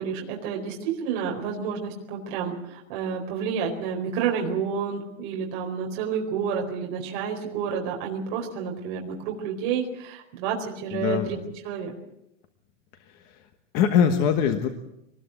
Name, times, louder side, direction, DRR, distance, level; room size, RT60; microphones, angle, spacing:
voice 1, 0.0-11.4 11.6-11.9, right 6 dB, 35° right, 0 dB, 4.4 m, -30 dB
voice 2, 10.9-11.3 13.1-13.4 13.7-14.7, left 7 dB, 25° left, 7 dB, 1.2 m, -23 dB
25.0 x 20.0 x 8.1 m, 0.83 s
supercardioid pair, 180°, 37 cm